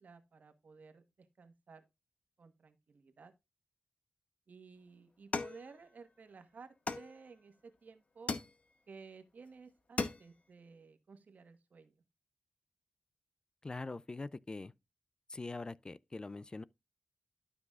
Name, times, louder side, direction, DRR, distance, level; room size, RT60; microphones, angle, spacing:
voice 1, 0.0-1.8 2.4-3.3 4.5-8.3 8.9-11.9, right 4 dB, 70° right, 1.3 m, -55 dB
sound 1, 5.3-6.3 6.9-7.6 8.3-9.0 9.5-9.6 9.8-10.5, left 4 dB, 55° left, 0.9 m, -39 dB
voice 2, 13.6-14.7 15.3-16.6, left 3 dB, 30° left, 0.3 m, -43 dB
12.0 x 6.0 x 2.4 m
wide cardioid pair, 90°, 3 cm